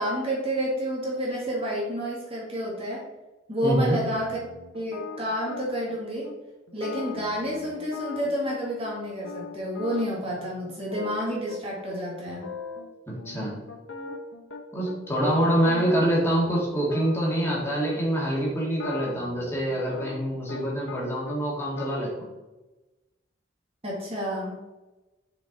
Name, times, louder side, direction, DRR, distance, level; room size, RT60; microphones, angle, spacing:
voice 1, 0.0-3.0 3.5-4.4 4.7-6.3 6.7-12.5 15.7-15.8 23.8-24.5, equal, 30° right, -4 dB, 1.7 m, -29 dB
voice 2, 3.6-4.0 13.1-13.5 14.7-22.3, right 1 dB, 15° left, -5 dB, 2.0 m, -25 dB
sound 1, 4.1-6.0 6.2-6.3 6.7-9.0 9.2-11.6 11.9-12.0 12.3-12.9 13.2-15.0 15.3-18.0 18.6-21.0 21.3-21.9, left 5 dB, 90° left, 1.0 m, -39 dB
5.9 x 5.0 x 4.1 m, 1.1 s
head